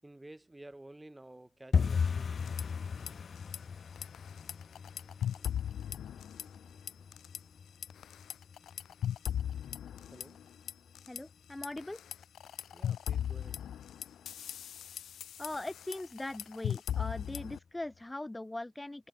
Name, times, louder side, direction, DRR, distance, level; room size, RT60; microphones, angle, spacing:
voice 1, 0.0-2.3 9.7-9.8 10.1-10.4 12.7-13.6, right 1 dB, 10° right, 6.3 m, -52 dB
sound 1, 1.7-12.4 12.7-13.4 13.7-14.0 14.2-14.6 14.9-15.0 15.5-16.0 16.4-16.5 17.0-17.1, left 6 dB, 45° left, 2.4 m, -38 dB
sound 2, 2.4-3.1 3.4-3.6 4.0-6.6 6.9-7.4 7.8-11.2 11.6-17.6, left 10 dB, 65° left, 4.6 m, -38 dB
voice 2, 11.1-12.0 15.4-19.1, left 1 dB, 10° left, 6.7 m, -40 dB
cardioid pair, 90°, 0 cm